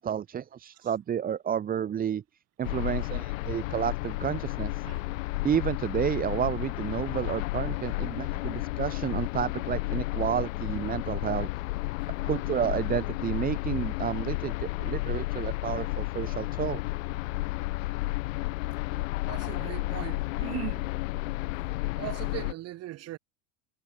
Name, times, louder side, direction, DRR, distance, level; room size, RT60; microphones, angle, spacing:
voice 1, 0.0-2.2 2.6-4.8 5.4-11.5 12.3-16.8, right 9 dB, 20° right, 1.7 m, -31 dB
sound 1, 2.6-22.5, left 20 dB, 85° left, 4.9 m, -32 dB
voice 2, 19.3-20.9 22.0-23.2, right 15 dB, 40° right, 7.3 m, -38 dB
cardioid pair, 160°, 38 cm